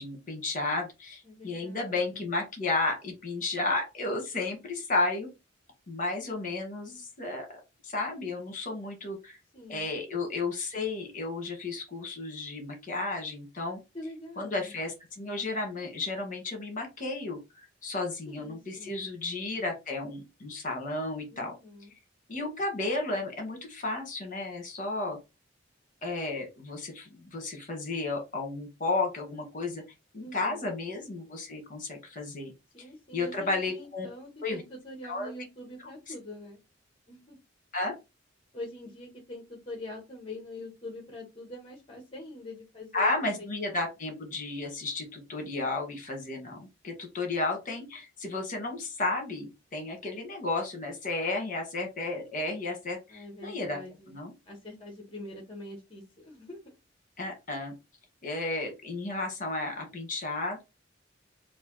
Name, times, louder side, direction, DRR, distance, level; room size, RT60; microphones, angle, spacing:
voice 1, 0.0-5.3 5.9-7.6 7.8-9.4 9.7-13.8 14.4-21.5 22.3-25.2 26.0-29.8 30.1-32.5 33.1-34.1 34.4-34.6 35.0-35.3 37.7-37.9 42.9-53.8 54.1-54.3 57.2-57.7 58.2-60.6, left 2 dB, 45° left, 1.4 m, -33 dB
voice 2, 1.2-2.3 9.5-9.9 13.9-14.8 18.3-19.1 21.3-21.9 30.2-30.7 32.7-36.6 37.1-37.4 38.5-43.8 53.1-54.2 54.5-56.6, left 1 dB, 30° left, 1.0 m, -44 dB
3.3 x 2.6 x 3.7 m
head